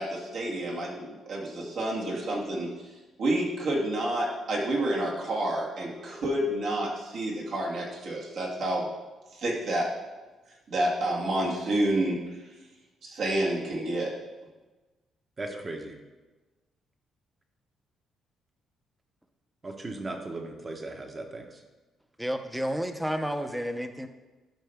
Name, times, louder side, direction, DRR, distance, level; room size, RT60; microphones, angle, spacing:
voice 1, 0.0-2.7 3.2-8.9 9.3-9.9 10.7-12.2 13.0-14.1, right 1 dB, 65° right, -3 dB, 2.2 m, -29 dB
voice 2, 15.4-15.9 19.6-21.5, right 2 dB, 30° right, 4 dB, 1.2 m, -37 dB
voice 3, 22.2-24.1, equal, 5° right, 7 dB, 0.8 m, -31 dB
11.5 x 5.6 x 3.6 m, 1.2 s
cardioid pair, 90°, 0 cm